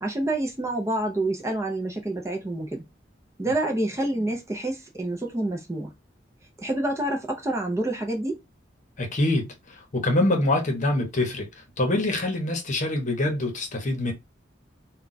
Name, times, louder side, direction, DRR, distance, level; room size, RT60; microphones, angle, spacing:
voice 1, 0.0-2.8 3.4-5.9 6.6-8.4, right 1 dB, 15° right, 0.5 m, -28 dB
voice 2, 9.0-11.5 11.8-14.1, left 1 dB, 45° left, 0.8 m, -25 dB
2.3 x 2.3 x 3.9 m
head